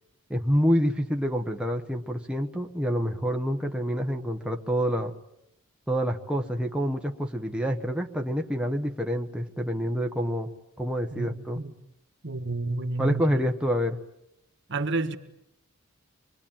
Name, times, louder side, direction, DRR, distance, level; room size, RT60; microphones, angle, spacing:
voice 1, 0.3-5.1 5.9-10.5 10.8-11.6 13.0-14.0, equal, 5° right, 1.2 m, -27 dB
voice 2, 11.1-11.7 12.2-13.4 14.7-15.2, right 3 dB, 55° right, 1.5 m, -30 dB
26.0 x 22.5 x 8.9 m
head